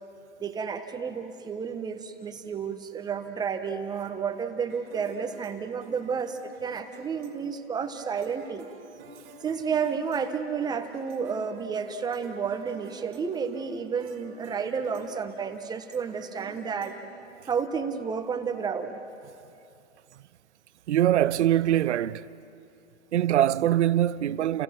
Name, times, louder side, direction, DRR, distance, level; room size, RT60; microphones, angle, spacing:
voice 1, 0.4-8.7 9.4-17.0 17.5-19.0, right 6 dB, 10° right, 1.3 m, -31 dB
sound 1, 4.7-17.9, right 5 dB, 50° right, 2.6 m, -50 dB
voice 2, 20.9-22.3 23.1-24.6, right 12 dB, 65° right, 0.8 m, -23 dB
30.0 x 30.0 x 6.1 m
hypercardioid pair, 135°, 37 cm